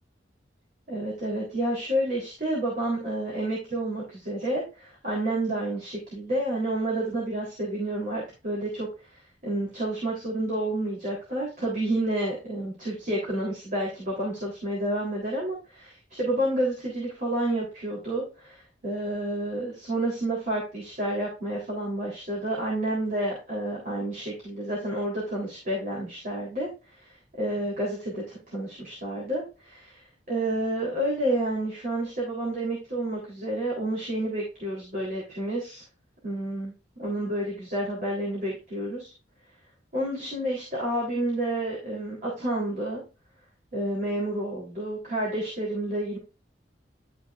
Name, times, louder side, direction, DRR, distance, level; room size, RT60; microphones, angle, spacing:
voice 1, 0.9-8.9 9.4-26.7 27.4-35.8 36.2-39.1 39.9-43.0 43.7-46.2, right 1 dB, 45° right, -5 dB, 3.6 m, -30 dB
12.0 x 6.0 x 2.5 m, 0.31 s
head